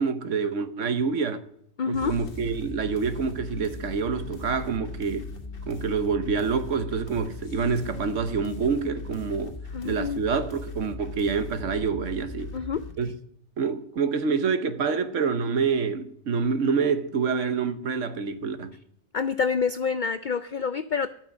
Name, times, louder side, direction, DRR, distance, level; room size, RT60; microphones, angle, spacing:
voice 1, 0.0-1.4 1.9-5.3 5.7-12.5 13.0-13.1 13.6-18.8, right 5 dB, 65° right, 1.3 m, -27 dB
voice 2, 1.8-2.1 9.7-10.3 12.5-12.8 19.1-21.1, left 5 dB, 80° left, 0.4 m, -27 dB
sound 1, 1.9-12.9, left 3 dB, 45° left, 1.6 m, -39 dB
sound 2, 3.2-9.0, left 14 dB, 20° right, 1.8 m, -53 dB
12.5 x 6.1 x 8.4 m
omnidirectional pair, 1.4 m